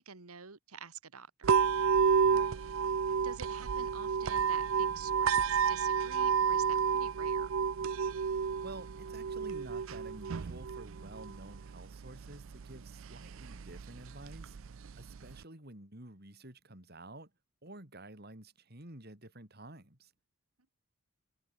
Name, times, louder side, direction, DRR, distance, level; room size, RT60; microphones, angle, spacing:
voice 1, 0.0-1.5 3.2-7.5, right 6 dB, 90° right, 1.8 m, -48 dB
sound 1, 1.4-15.4, right 6 dB, 65° right, 0.5 m, -31 dB
voice 2, 2.2-2.6 8.6-14.6 15.0-17.3 17.6-20.1, right 1 dB, 45° right, 4.4 m, -50 dB
head